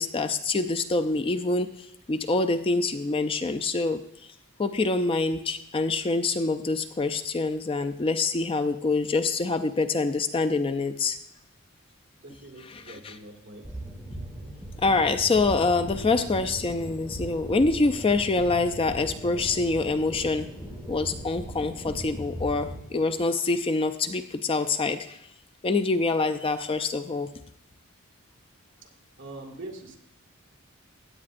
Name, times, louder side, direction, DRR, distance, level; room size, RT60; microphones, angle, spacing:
voice 1, 0.0-4.0 4.6-11.2 12.6-13.2 14.8-20.5 20.9-25.2 25.6-27.3, left 3 dB, 25° left, 9 dB, 0.4 m, -26 dB
voice 2, 12.2-13.7 29.2-30.0, right 2 dB, 55° right, 0 dB, 2.0 m, -43 dB
sound 1, 13.6-22.8, right 1 dB, ahead, 1.5 m, -38 dB
16.0 x 9.6 x 2.5 m, 0.82 s
head